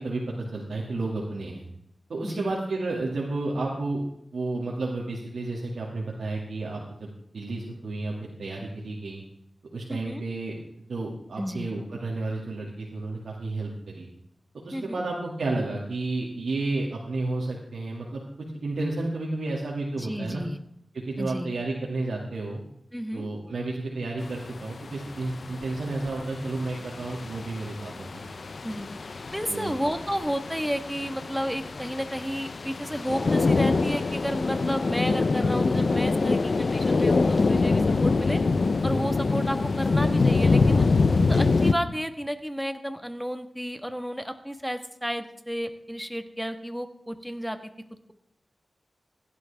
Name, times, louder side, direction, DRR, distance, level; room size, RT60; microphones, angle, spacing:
voice 1, 0.0-1.6 2.1-4.0 4.3-7.1 7.3-9.2 9.7-10.6 10.9-14.1 14.6-18.2 18.6-20.4 21.0-22.6 23.1-28.1 29.5-29.7, right 2 dB, 90° right, -3 dB, 2.3 m, -31 dB
voice 2, 9.9-10.3 11.4-11.7 14.7-15.0 20.0-20.6 21.2-21.5 22.9-23.3 28.6-28.9 29.3-38.4 38.8-40.9 41.3-47.6, equal, ahead, 8 dB, 1.5 m, -32 dB
sound 1, 24.2-41.7, left 3 dB, 65° left, 0.7 m, -25 dB
16.5 x 11.5 x 3.6 m, 0.76 s
cardioid pair, 55°, 0 cm